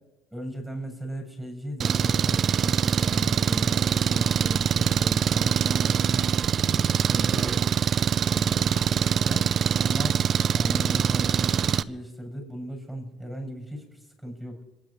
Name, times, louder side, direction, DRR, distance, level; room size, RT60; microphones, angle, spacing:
voice 1, 0.3-6.3 6.7-7.7 8.2-9.5 9.8-10.3 10.5-14.6, equal, 5° left, 2 dB, 7.7 m, -37 dB
Engine, 1.8-11.8, right 8 dB, 45° right, 0.5 m, -24 dB
24.5 x 10.5 x 5.4 m, 1.0 s
cardioid pair, 110°, 0 cm